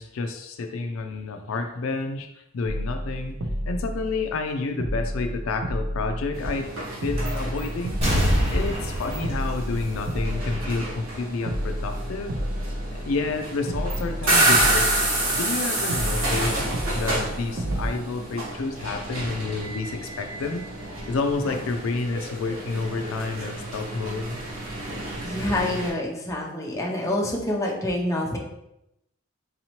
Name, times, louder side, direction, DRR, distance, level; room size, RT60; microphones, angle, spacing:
voice 1, 0.0-3.4 3.7-8.0 8.5-12.4 12.9-14.9 15.3-16.7 16.9-20.7 21.1-24.4, left 3 dB, 80° left, 5 dB, 0.4 m, -30 dB
sound 1, 2.6-4.5 4.8-6.7 7.0-8.9 9.2-11.2 11.5-13.4 13.7-15.6 15.9-17.9, equal, 65° right, 0.6 m, -31 dB
sound 2, 6.3-25.9, right 2 dB, 80° right, 1.2 m, -29 dB
sound 3, 8.0-10.6 11.0-11.1, equal, 30° right, 1.3 m, -25 dB
voice 2, 25.2-28.4, left 1 dB, 15° left, -2 dB, 0.6 m, -27 dB
4.0 x 2.8 x 3.0 m, 0.85 s
head